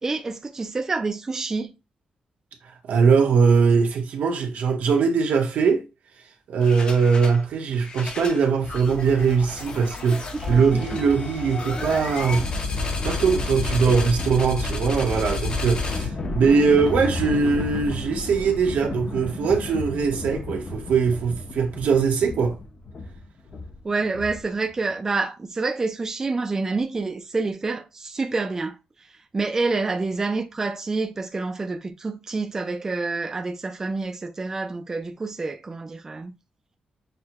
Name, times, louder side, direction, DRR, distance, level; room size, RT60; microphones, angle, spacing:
voice 1, 0.0-1.7 10.3-11.0 13.9-14.0 23.8-36.3, right 3 dB, 20° right, 0.4 m, -28 dB
voice 2, 2.6-5.8 6.5-12.5 13.0-22.6, right 5 dB, 85° right, 1.0 m, -21 dB
sound 1, 6.6-7.4 7.7-24.7, left 3 dB, 40° left, 0.7 m, -31 dB
6.5 x 2.2 x 2.9 m
wide cardioid pair, 175°, 3 cm